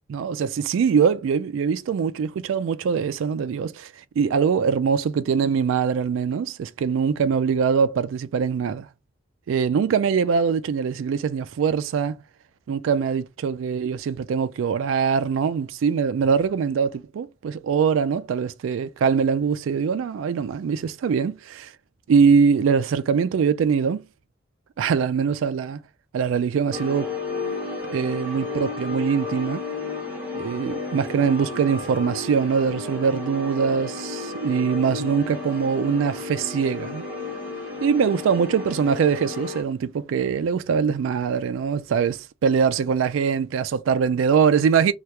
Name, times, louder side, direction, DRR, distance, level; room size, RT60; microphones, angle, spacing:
voice 1, 0.1-8.9 9.5-12.2 12.7-21.7 22.1-24.0 24.8-25.8 26.1-27.1 27.9-29.6 30.3-37.0 37.8-44.9, right 6 dB, 90° right, 0.3 m, -23 dB
sound 1, 26.7-39.6, left 3 dB, 10° right, 0.8 m, -32 dB
2.9 x 2.3 x 3.2 m
head